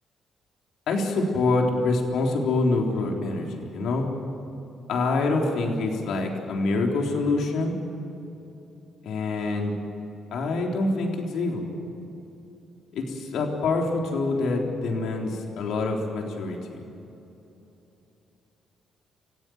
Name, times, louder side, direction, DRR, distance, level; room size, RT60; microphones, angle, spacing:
voice 1, 0.9-4.1 4.9-7.7 9.0-9.7 10.3-11.7 12.9-16.8, left 3 dB, 75° left, 1 dB, 3.7 m, -26 dB
28.0 x 16.5 x 8.0 m, 2.9 s
cardioid pair, 90°, 0 cm